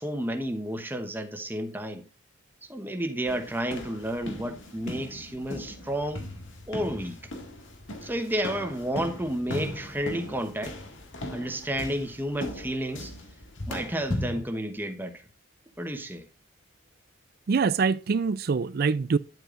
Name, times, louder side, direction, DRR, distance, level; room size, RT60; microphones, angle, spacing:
voice 1, 0.0-2.0 2.7-6.2 6.7-7.2 8.0-10.7 11.3-13.1 13.7-15.2 15.8-16.3, right 1 dB, 10° right, 1.1 m, -31 dB
sound 1, 3.2-14.4, left 1 dB, 65° left, 2.0 m, -38 dB
voice 2, 17.5-19.2, right 5 dB, 50° right, 0.4 m, -24 dB
10.5 x 8.0 x 2.5 m
head